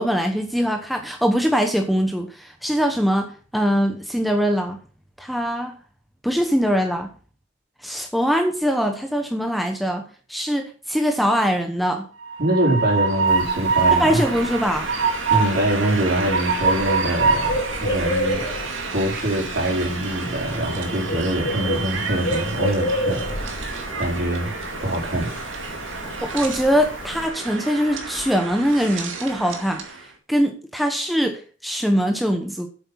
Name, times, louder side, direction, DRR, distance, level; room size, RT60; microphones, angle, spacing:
voice 1, 0.0-4.8 5.2-5.8 6.2-7.1 7.8-12.1 14.0-14.9 26.2-32.7, equal, ahead, 4 dB, 0.8 m, -22 dB
Train, 12.2-30.0, right 4 dB, 65° right, 2.2 m, -27 dB
voice 2, 12.4-14.2 15.3-23.2 24.0-24.5 24.8-25.3, right 1 dB, 50° right, -2 dB, 4.4 m, -24 dB
Bird, 13.3-27.3, left 1 dB, 70° left, 3.1 m, -31 dB
8.6 x 7.5 x 5.8 m, 0.39 s
head